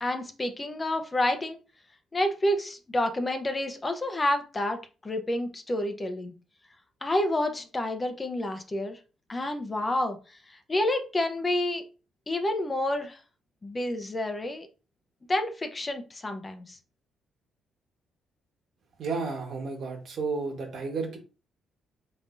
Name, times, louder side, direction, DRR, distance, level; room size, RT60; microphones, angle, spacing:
voice 1, 0.0-1.6 2.1-6.3 7.0-9.0 9.3-10.2 10.5-11.8 12.3-13.2 13.6-14.7 15.3-16.8, left 1 dB, 25° left, 6 dB, 0.8 m, -29 dB
voice 2, 19.0-21.2, right 4 dB, 60° right, 3 dB, 1.4 m, -32 dB
4.4 x 3.7 x 2.6 m, 0.33 s
cardioid pair, 90°, 0 cm